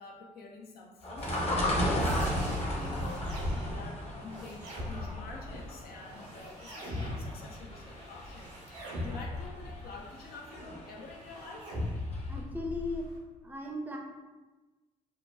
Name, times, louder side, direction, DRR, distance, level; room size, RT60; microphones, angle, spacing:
voice 1, 0.0-11.7, left 3 dB, 55° left, 0 dB, 0.4 m, -48 dB
sound 1, 1.0-11.8 12.1-12.2, equal, 35° left, 0.9 m, -35 dB
sound 2, 1.2-13.2, left 1 dB, 70° right, 0.7 m, -41 dB
voice 2, 12.3-13.1 13.4-14.0, left 2 dB, 10° right, -1 dB, 0.5 m, -36 dB
2.9 x 2.1 x 2.2 m, 1.2 s
hypercardioid pair, 45°, 19 cm